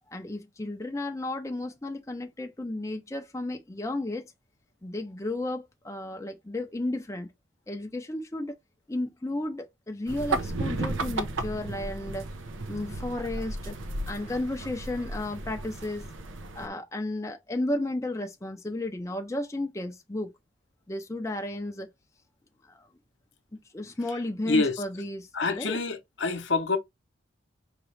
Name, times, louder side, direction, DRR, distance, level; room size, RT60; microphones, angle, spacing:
voice 1, 0.1-4.3 4.8-7.3 7.7-8.6 8.9-12.3 12.7-13.8 14.1-16.1 16.5-20.3 20.9-21.9 22.6-22.9 23.7-25.8, left 1 dB, 15° left, 0.5 m, -33 dB
sound 1, 10.1-16.7, right 2 dB, 75° right, 0.7 m, -34 dB
voice 2, 25.3-26.8, left 3 dB, 65° left, 0.8 m, -26 dB
4.9 x 3.0 x 3.2 m
head